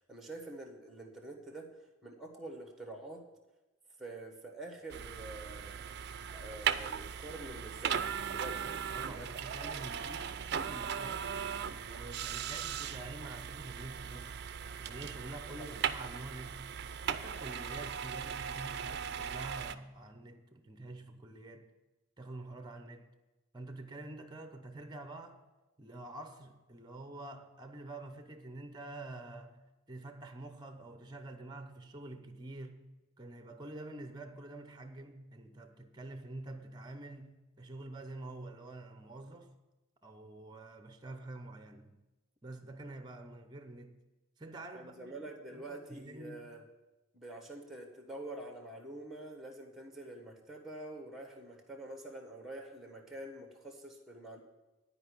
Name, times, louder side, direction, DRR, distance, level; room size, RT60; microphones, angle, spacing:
voice 1, 0.1-3.2 4.0-5.9 6.3-8.6 9.0-9.3 15.6-15.8 17.7-17.8 44.7-46.6 47.1-54.4, right 2 dB, ahead, 1.4 m, -47 dB
sound 1, 4.9-19.8, right 7 dB, 50° right, 0.4 m, -38 dB
voice 2, 8.6-14.4 14.8-21.7 22.2-23.1 23.5-25.4 25.8-39.6 40.0-42.0 42.4-44.0 44.4-45.1 45.5-46.5, right 2 dB, 20° right, 0.8 m, -47 dB
11.5 x 5.1 x 8.3 m
head